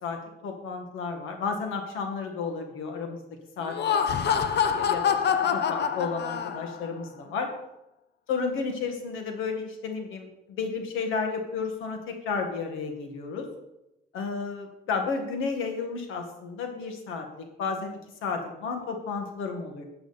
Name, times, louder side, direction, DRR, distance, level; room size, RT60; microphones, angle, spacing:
voice 1, 0.0-3.2 3.6-5.2 5.5-7.5 8.3-13.5 14.1-19.8, left 5 dB, 90° left, 4 dB, 1.8 m, -32 dB
Laughter, 3.6-6.9, left 7 dB, 55° left, 0.8 m, -26 dB
12.0 x 7.9 x 4.2 m, 0.91 s
cardioid pair, 90°, 20 cm